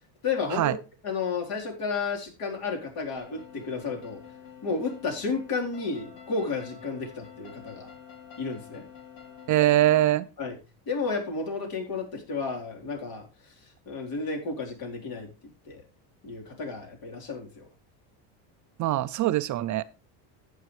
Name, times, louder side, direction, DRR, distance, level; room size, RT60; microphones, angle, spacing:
voice 1, 0.2-0.8 1.0-4.2 4.6-7.9 8.4-8.8 10.4-10.6 10.9-13.5 13.9-15.3 15.7-15.8 16.2-17.7, left 4 dB, 50° left, 0 dB, 4.1 m, -32 dB
sound 1, 3.2-10.0, left 8 dB, 80° left, 2.8 m, -48 dB
voice 2, 9.5-10.3 18.8-19.8, right 14 dB, 40° right, 13 dB, 0.5 m, -22 dB
14.0 x 8.6 x 3.3 m, 0.31 s
supercardioid pair, 120°, 45 cm